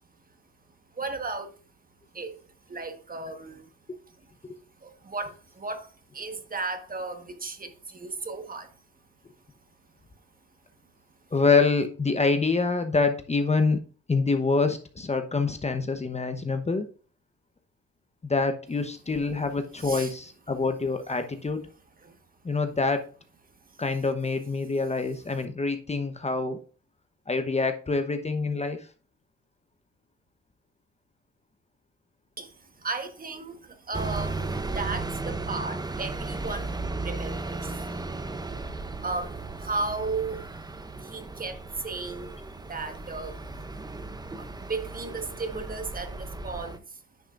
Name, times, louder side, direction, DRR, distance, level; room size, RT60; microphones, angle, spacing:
voice 1, 0.9-1.6 2.1-3.7 4.8-8.7 19.8-20.1 22.0-22.2 23.7-23.8 32.4-38.0 39.0-40.5 41.0-43.4 44.4-47.0, right 3 dB, 30° right, 1.4 m, -35 dB
voice 2, 11.3-13.8 14.1-16.9 18.2-21.6 22.4-23.1 23.8-26.6 27.3-28.8, left 4 dB, 20° left, 1.0 m, -26 dB
sound 1, 33.9-46.8, right 3 dB, 15° right, 0.7 m, -35 dB
10.0 x 6.1 x 2.5 m
cardioid pair, 90°, 30 cm